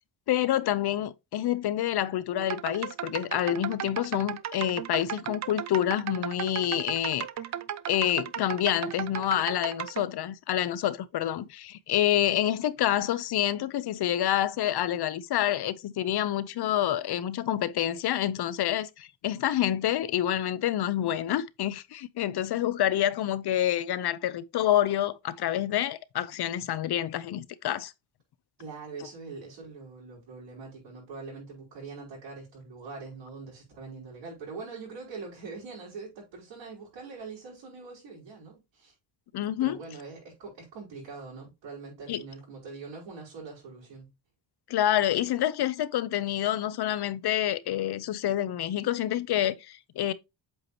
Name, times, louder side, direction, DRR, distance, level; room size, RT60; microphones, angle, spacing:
voice 1, 0.3-7.3 7.9-27.9 39.3-39.8 42.1-42.2 44.7-50.1, left 12 dB, 60° left, 0.7 m, -27 dB
sound 1, 2.4-10.0, right 10 dB, 40° right, 0.5 m, -35 dB
voice 2, 28.6-38.9 39.6-44.1, right 4 dB, 85° right, 4.9 m, -43 dB
8.0 x 4.7 x 2.9 m
cardioid pair, 135°, 44 cm